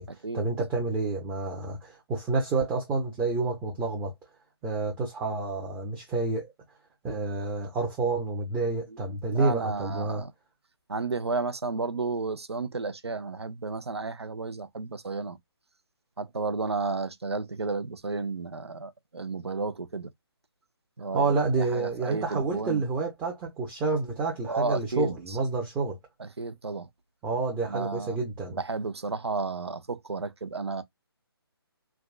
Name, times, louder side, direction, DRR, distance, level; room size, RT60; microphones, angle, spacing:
voice 1, 0.3-4.1 4.6-6.5 7.0-10.2 21.1-26.0 27.2-28.6, right 3 dB, 10° right, 0.6 m, -29 dB
voice 2, 9.3-10.3 10.9-15.4 16.2-20.1 21.0-21.2 21.7-22.8 24.5-25.2 26.4-26.9 27.7-28.2 28.6-30.8, right 4 dB, 85° right, 0.6 m, -32 dB
3.4 x 2.2 x 2.3 m
figure-of-eight pair, 150°, 13 cm